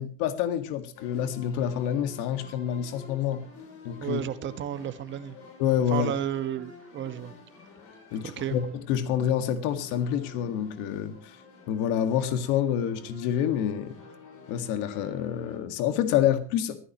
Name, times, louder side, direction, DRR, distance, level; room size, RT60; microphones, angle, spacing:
voice 1, 0.0-3.4 3.9-4.2 5.6-6.1 8.1-8.6 8.9-11.4 11.7-14.0 14.5-16.8, left 9 dB, 65° left, 8 dB, 1.9 m, -27 dB
sound 1, 0.9-15.6, left 3 dB, 45° left, 6.0 m, -49 dB
voice 2, 4.0-5.3 5.9-7.3 8.2-8.6, right 10 dB, 35° right, 10 dB, 1.4 m, -32 dB
22.0 x 15.0 x 3.0 m, 0.39 s
cardioid pair, 160°, 32 cm